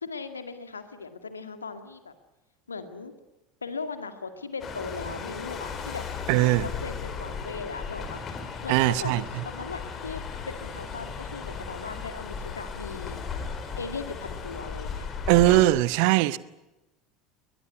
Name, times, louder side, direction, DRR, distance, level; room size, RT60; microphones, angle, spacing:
voice 1, 0.0-2.1 2.7-3.1 3.6-6.1 6.4-8.2 8.6-9.1 9.4-13.2 13.7-15.1, left 4 dB, 80° left, 2.0 m, -38 dB
sound 1, 4.6-15.7, left 5 dB, 35° left, 4.3 m, -36 dB
voice 2, 6.3-6.7 8.7-9.2 15.3-16.4, right 17 dB, 55° right, 0.9 m, -20 dB
22.5 x 21.0 x 9.6 m
figure-of-eight pair, 70°, 0 cm